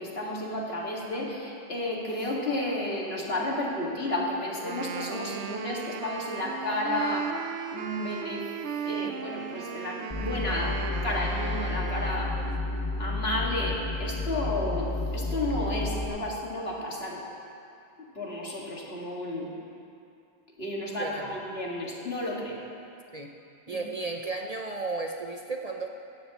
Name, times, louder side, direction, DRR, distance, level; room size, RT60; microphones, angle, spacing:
voice 1, 0.0-7.3 7.7-8.5 8.8-12.4 13.0-17.2 18.0-19.5 20.6-22.6 23.7-23.8, left 1 dB, 60° left, -4 dB, 2.3 m, -32 dB
Wind instrument woodwind instrument, 4.5-12.7, right 7 dB, 80° right, 0.9 m, -37 dB
sound 1, 10.1-16.1, left 2 dB, 20° left, 1.1 m, -31 dB
voice 2, 21.0-21.3 23.1-23.3 23.7-25.9, right 3 dB, 40° right, 2 dB, 0.8 m, -34 dB
16.5 x 15.5 x 3.0 m, 2.5 s
omnidirectional pair, 1.1 m